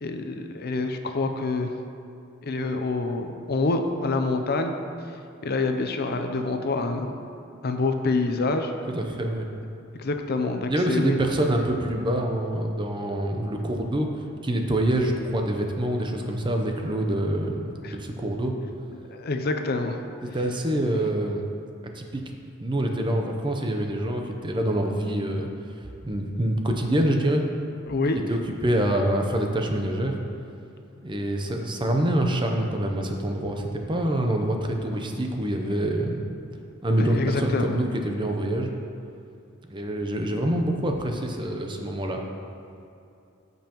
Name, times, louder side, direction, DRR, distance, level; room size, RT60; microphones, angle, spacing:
voice 1, 0.0-1.7 2.4-4.7 5.4-7.2 7.6-8.7 10.0-11.2 17.8-18.0 18.9-20.0 27.9-28.2 37.0-37.8, left 3 dB, 50° left, 6 dB, 0.5 m, -26 dB
voice 2, 8.9-9.5 10.7-18.5 20.3-21.5 21.9-22.2 22.6-27.4 28.3-30.2 31.0-36.3 36.8-38.7 39.7-42.2, right 1 dB, 25° right, 2 dB, 0.7 m, -26 dB
14.0 x 5.4 x 3.0 m, 2.6 s
head